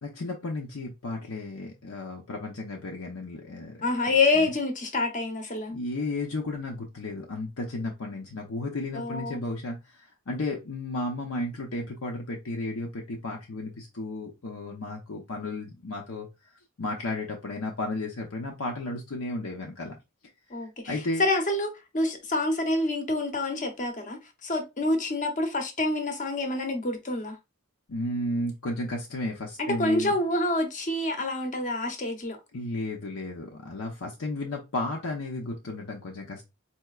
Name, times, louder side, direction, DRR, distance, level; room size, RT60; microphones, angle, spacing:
voice 1, 0.0-4.1 5.7-16.3 16.8-20.0 20.9-21.3 27.9-30.1 32.5-36.4, left 2 dB, 75° left, 0.7 m, -33 dB
voice 2, 3.8-5.7 8.9-9.4 20.5-27.4 29.6-32.4, left 2 dB, 35° left, 0.8 m, -27 dB
4.3 x 2.8 x 2.4 m
head